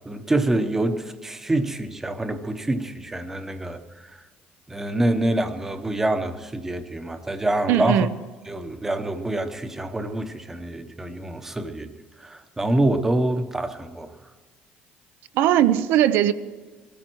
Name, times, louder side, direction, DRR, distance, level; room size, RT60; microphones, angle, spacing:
voice 1, 0.1-3.8 4.7-8.1 8.5-11.9 12.2-14.1, right 1 dB, 10° right, 0.9 m, -26 dB
voice 2, 7.7-8.1 15.4-16.3, right 11 dB, 75° right, 0.7 m, -19 dB
21.5 x 13.5 x 4.6 m
cardioid pair, 175°, 4 cm